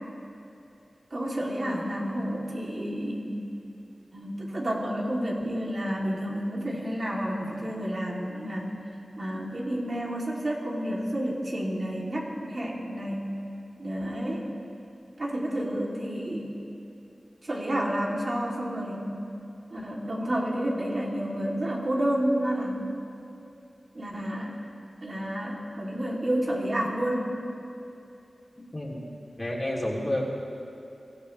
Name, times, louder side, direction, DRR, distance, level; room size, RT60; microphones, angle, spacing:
voice 1, 1.1-3.4 4.1-8.7 9.2-13.3 13.8-14.5 15.2-16.5 17.4-19.1 19.7-22.9 23.9-24.5 25.0-27.4, equal, 50° right, -3 dB, 3.0 m, -30 dB
voice 2, 28.7-29.0 29.4-30.3, left 1 dB, 30° left, -4 dB, 3.1 m, -29 dB
23.5 x 17.5 x 3.3 m, 2.7 s
wide cardioid pair, 75°, 0 cm